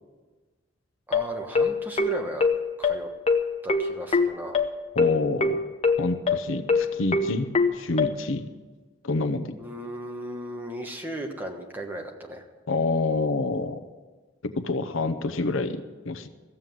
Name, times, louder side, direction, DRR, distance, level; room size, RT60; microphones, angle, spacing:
sound 1, 1.1-8.1, left 4 dB, 30° left, 0.7 m, -23 dB
voice 1, 1.1-2.5 2.8-3.1 3.6-4.6 9.6-12.4, right 1 dB, 10° right, 1 dB, 1.3 m, -36 dB
voice 2, 5.0-5.6 6.0-8.4 9.0-9.5 12.7-13.8 14.4-15.8 16.1-16.3, left 3 dB, 75° left, 9 dB, 0.8 m, -27 dB
15.0 x 7.6 x 9.2 m, 1.3 s
head